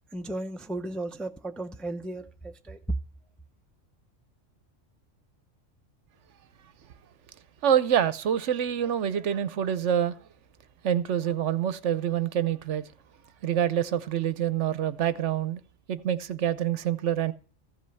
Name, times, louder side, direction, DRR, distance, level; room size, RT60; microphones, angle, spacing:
voice 1, 0.1-2.8, right 2 dB, ahead, 0.6 m, -35 dB
voice 2, 7.6-10.2 10.8-12.8 13.4-15.6 15.9-17.3, right 9 dB, 70° right, 1.0 m, -26 dB
14.5 x 5.4 x 7.6 m
omnidirectional pair, 1.3 m